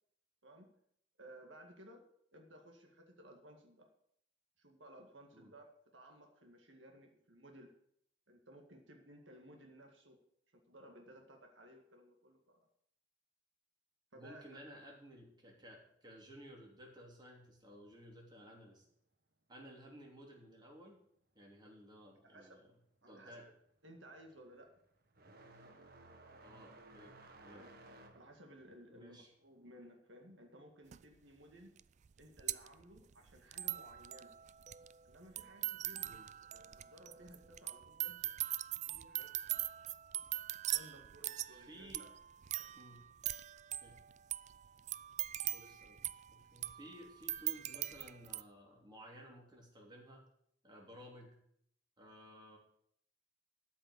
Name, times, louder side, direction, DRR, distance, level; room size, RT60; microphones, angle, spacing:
voice 1, 0.4-0.7 1.2-2.0 2.3-3.9 4.6-5.7 5.9-7.7 8.3-10.2 10.7-12.7 14.1-14.6 22.3-22.6 23.0-23.5 23.8-24.8 27.5-31.8 32.2-34.3 35.0-36.2 36.5-38.3 38.8-39.6 40.7-42.1 42.6-42.7, right 1 dB, 85° right, 3 dB, 2.0 m, -58 dB
voice 2, 14.1-18.8 19.5-21.0 21.3-22.7 23.1-23.5 26.4-27.1 27.4-27.7 28.9-29.3 36.0-36.3 41.5-42.1 42.8-43.0 43.8-44.0 45.5-50.2 50.6-51.4 52.0-52.6, equal, 25° right, -1 dB, 3.1 m, -56 dB
sound 1, 22.6-22.9 23.2-31.5 31.8-32.8 33.8-33.9 34.8-34.9 36.6-36.7, right 2 dB, 55° right, 1.5 m, -60 dB
sound 2, 30.9-31.0 31.8-48.4, right 14 dB, 40° right, 0.3 m, -42 dB
13.0 x 5.8 x 8.2 m, 0.69 s
head